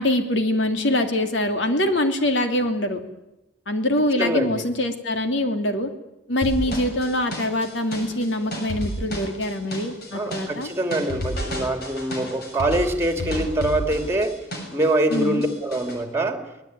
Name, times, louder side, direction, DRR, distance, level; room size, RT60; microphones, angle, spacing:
voice 1, 0.0-3.0 3.7-5.9 6.3-10.7 15.1-15.5, left 1 dB, 80° left, 6 dB, 2.9 m, -24 dB
voice 2, 4.2-4.6 10.1-14.4 14.7-16.4, right 1 dB, 15° right, 7 dB, 2.5 m, -24 dB
sound 1, 6.4-14.9 15.1-16.0, equal, 55° left, 6.5 m, -31 dB
24.0 x 19.0 x 9.4 m, 0.94 s
head